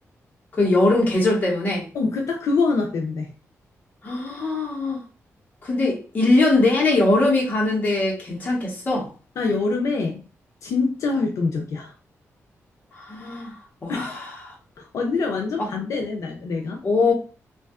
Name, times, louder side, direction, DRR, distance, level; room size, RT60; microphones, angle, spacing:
voice 1, 0.5-1.8 4.0-5.0 5.6-9.1 12.9-13.5 13.8-14.5 15.6-15.7 16.8-17.1, left 2 dB, 30° left, 0.9 m, -21 dB
voice 2, 1.9-3.3 9.4-10.2 10.6-11.9 13.9-14.3 14.8-16.8, left 4 dB, 75° left, 0.4 m, -25 dB
2.6 x 2.2 x 2.3 m
wide cardioid pair, 175°, 5 cm